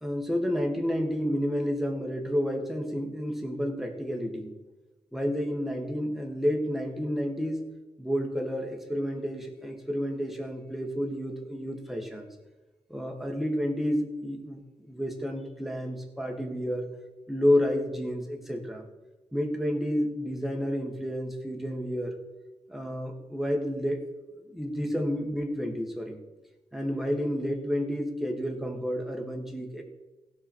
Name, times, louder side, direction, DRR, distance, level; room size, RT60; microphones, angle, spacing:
voice 1, 0.0-4.5 5.1-7.7 8.0-12.3 12.9-16.9 17.3-18.8 19.3-22.2 22.7-24.0 24.4-26.2 26.7-29.8, equal, ahead, 2 dB, 1.8 m, -30 dB
16.0 x 6.0 x 4.5 m, 1.1 s
cardioid pair, 80°, 12 cm